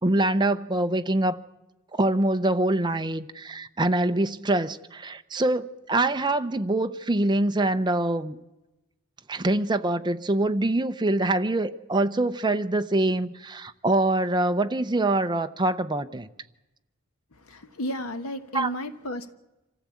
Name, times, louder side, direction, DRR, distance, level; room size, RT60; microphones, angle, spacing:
voice 1, 0.0-1.4 2.0-8.4 9.3-16.3 18.5-18.7, right 2 dB, 20° right, 0.7 m, -24 dB
voice 2, 17.3-19.3, equal, 75° left, 1.4 m, -33 dB
26.0 x 15.0 x 8.5 m
head